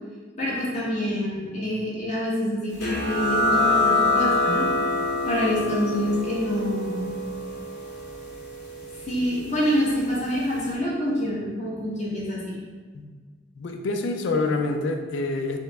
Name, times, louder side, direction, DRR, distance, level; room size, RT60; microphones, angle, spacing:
voice 1, 0.4-4.7 5.2-7.1 9.1-12.6, equal, 40° left, -7 dB, 1.1 m, -26 dB
sound 1, 2.8-10.0, left 2 dB, 65° left, 1.4 m, -26 dB
voice 2, 13.6-15.6, left 3 dB, 85° left, 4 dB, 0.4 m, -26 dB
4.4 x 2.1 x 3.4 m, 1.5 s
head